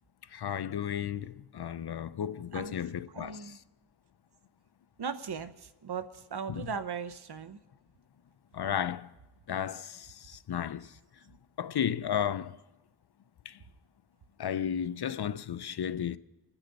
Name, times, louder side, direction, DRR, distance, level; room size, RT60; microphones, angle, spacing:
voice 1, 0.3-3.6 6.5-6.7 8.5-9.1 9.5-11.0 11.6-12.6 13.5-13.6 14.4-16.2, left 9 dB, 70° left, 0.6 m, -34 dB
voice 2, 3.1-3.6 5.0-5.5 5.8-7.6, right 6 dB, 70° right, 0.9 m, -37 dB
29.0 x 9.9 x 4.1 m
cardioid pair, 45°, 41 cm